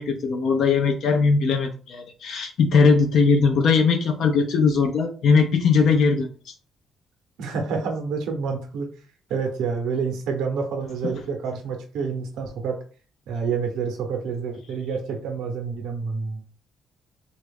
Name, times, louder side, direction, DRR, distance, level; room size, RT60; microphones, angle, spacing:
voice 1, 0.0-6.5 11.0-11.1, left 5 dB, 75° left, 3 dB, 0.4 m, -20 dB
voice 2, 7.4-8.9 9.3-12.8 13.3-16.4, right 5 dB, 85° right, 4 dB, 0.7 m, -28 dB
3.0 x 2.4 x 3.4 m, 0.39 s
cardioid pair, 90°, 0 cm